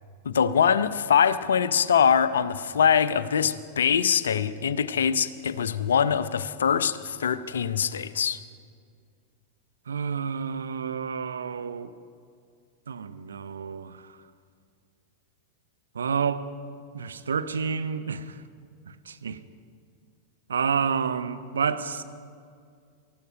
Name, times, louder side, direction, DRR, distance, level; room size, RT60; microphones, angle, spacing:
voice 1, 0.2-8.4, left 7 dB, 70° left, 14 dB, 0.6 m, -23 dB
voice 2, 9.9-11.9 12.9-14.0 15.9-16.4 16.9-18.3 19.1-19.4 20.5-22.0, right 6 dB, 70° right, 10 dB, 0.7 m, -29 dB
19.0 x 14.5 x 5.2 m, 2.2 s
figure-of-eight pair, 90°, 0 cm